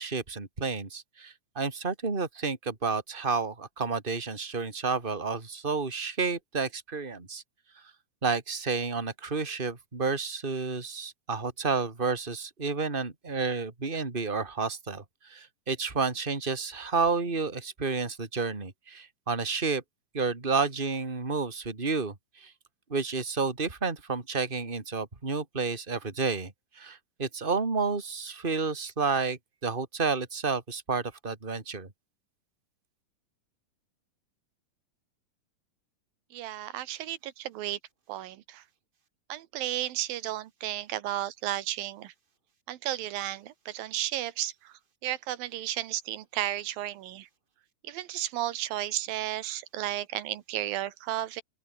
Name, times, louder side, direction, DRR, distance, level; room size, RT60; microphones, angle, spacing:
voice 1, 0.0-7.4 8.2-19.8 20.1-22.5 22.9-31.9, right 4 dB, 15° right, 2.9 m, -30 dB
voice 2, 36.3-37.8 38.1-38.6 39.3-42.1 42.7-47.3 47.8-51.4, right 13 dB, 80° right, 2.9 m, -33 dB
open air
omnidirectional pair, 4.1 m